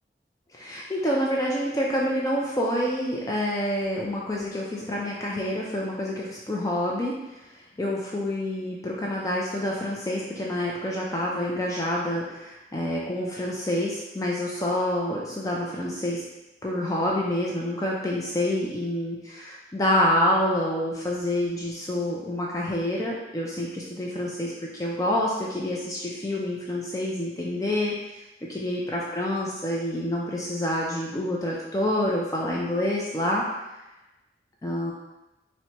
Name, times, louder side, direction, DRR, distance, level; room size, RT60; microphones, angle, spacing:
voice 1, 0.5-7.2 7.8-16.2 16.6-28.0 28.4-33.4 34.6-34.9, left 1 dB, 20° left, -4 dB, 0.3 m, -27 dB
4.4 x 2.1 x 2.8 m, 0.99 s
head